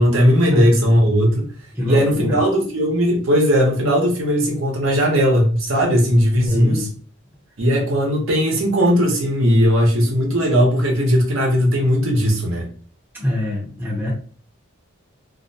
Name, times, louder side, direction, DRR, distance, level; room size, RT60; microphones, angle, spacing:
voice 1, 0.0-1.5 1.9-6.9 7.6-12.7, equal, 70° right, 1 dB, 0.7 m, -17 dB
voice 2, 1.7-2.4 6.5-6.9 13.1-14.1, left 1 dB, 10° right, -4 dB, 0.6 m, -24 dB
2.4 x 2.1 x 2.6 m, 0.43 s
head